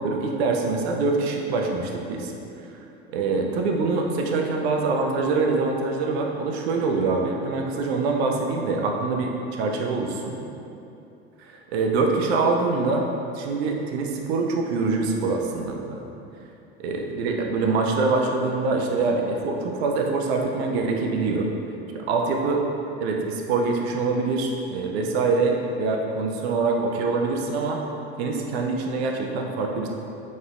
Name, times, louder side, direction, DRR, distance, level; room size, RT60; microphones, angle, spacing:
voice 1, 0.0-2.3 3.1-10.3 11.4-13.1 13.3-16.0 16.8-21.5 21.9-22.6 23.0-27.8 28.2-29.9, right 3 dB, 70° right, 1 dB, 0.6 m, -24 dB
5.3 x 3.1 x 2.5 m, 2.8 s
hypercardioid pair, 85°, 33 cm